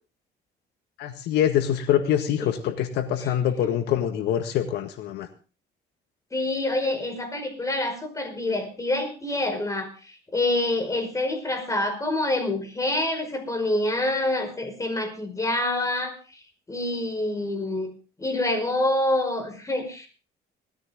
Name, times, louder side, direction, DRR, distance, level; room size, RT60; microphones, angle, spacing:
voice 1, 1.0-5.3, left 10 dB, 80° left, 8 dB, 1.8 m, -24 dB
voice 2, 6.3-16.4 16.7-17.9 18.2-20.1, left 1 dB, 20° left, 6 dB, 5.2 m, -26 dB
19.5 x 14.5 x 3.7 m, 0.34 s
cardioid pair, 110°, 17 cm